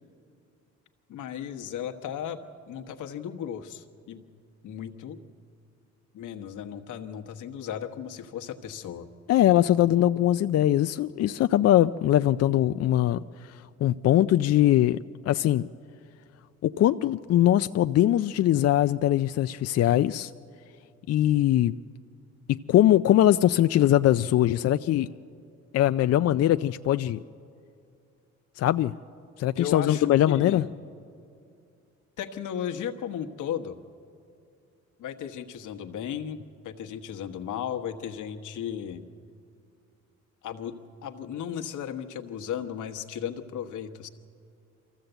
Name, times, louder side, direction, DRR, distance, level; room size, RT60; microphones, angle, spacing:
voice 1, 1.1-4.2 4.6-5.2 6.1-9.1 29.6-30.7 32.2-33.8 35.0-36.4 36.6-39.0 40.4-40.8 41.0-44.1, left 9 dB, 80° left, 5 dB, 1.3 m, -35 dB
voice 2, 9.3-15.7 16.6-20.3 21.1-21.7 22.5-25.1 25.7-27.2 28.6-28.9 29.4-30.6, left 12 dB, 55° left, 10 dB, 0.4 m, -22 dB
23.5 x 15.0 x 8.0 m, 2.4 s
cardioid pair, 90°, 30 cm